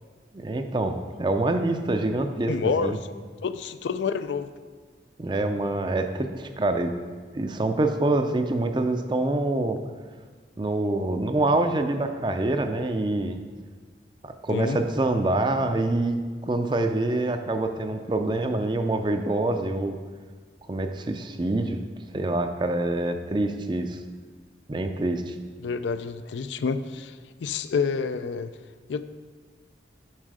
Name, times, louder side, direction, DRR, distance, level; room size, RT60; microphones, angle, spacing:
voice 1, 0.3-2.6 2.8-3.0 5.2-6.9 7.4-9.8 10.6-13.4 14.2-20.0 20.7-21.8 22.1-24.0 24.7-25.4, right 2 dB, 25° right, 7 dB, 0.4 m, -26 dB
voice 2, 2.5-2.9 3.4-4.5 14.5-14.8 25.6-27.1 27.4-28.5 28.9-29.0, left 5 dB, 80° left, 11 dB, 0.4 m, -28 dB
7.5 x 5.5 x 4.9 m, 1.5 s
head